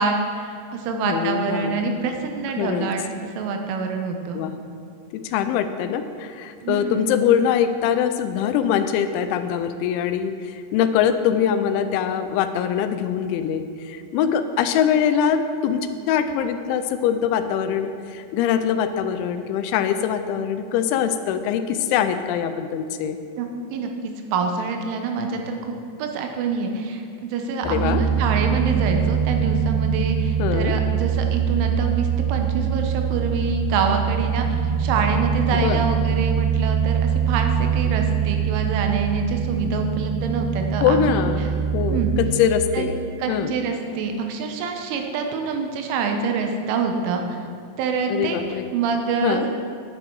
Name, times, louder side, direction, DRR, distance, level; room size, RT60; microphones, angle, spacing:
voice 1, 0.0-3.0 3.4-4.4 6.6-7.1 23.3-23.9 24.3-34.5 34.8-41.5 41.9-42.1 42.7-42.9 43.2-47.4 47.8-48.4 48.7-49.5, right 4 dB, 90° right, 4 dB, 3.4 m, -26 dB
voice 2, 0.9-1.9 2.6-2.9 4.3-4.5 5.1-23.2 27.6-28.0 30.4-30.8 35.5-35.8 40.8-41.5 41.7-43.0 43.3-43.5 48.1-48.7 49.2-49.5, left 8 dB, 85° left, 9 dB, 2.9 m, -23 dB
sound 1, 27.6-42.2, right 8 dB, 60° left, 3.3 m, -23 dB
9.8 x 8.6 x 4.6 m, 2.3 s
omnidirectional pair, 5.4 m